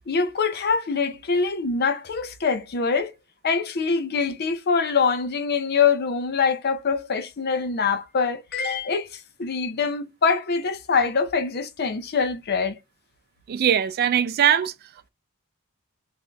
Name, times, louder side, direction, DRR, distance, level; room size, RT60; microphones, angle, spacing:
voice 1, 0.1-3.1 3.4-12.8, left 5 dB, 45° left, 0.5 m, -24 dB
voice 2, 13.5-14.7, right 9 dB, 45° right, 0.3 m, -21 dB
3.7 x 2.5 x 3.2 m
head